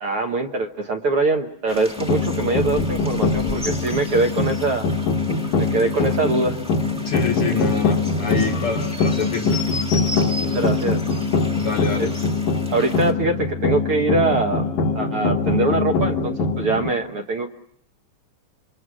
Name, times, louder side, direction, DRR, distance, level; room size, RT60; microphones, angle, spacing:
voice 1, 0.0-4.9 5.6-6.6 10.5-11.0 12.0-12.1 12.7-14.7 14.9-17.5, right 3 dB, 60° right, 4 dB, 1.7 m, -23 dB
sound 1, 1.7-13.1, left 1 dB, 5° right, 0.8 m, -36 dB
sound 2, 2.0-16.9, left 3 dB, 75° left, 2.6 m, -23 dB
voice 2, 7.0-9.6 11.6-12.1, left 5 dB, 55° left, 3 dB, 1.8 m, -26 dB
28.0 x 24.5 x 6.2 m, 0.67 s
omnidirectional pair, 3.6 m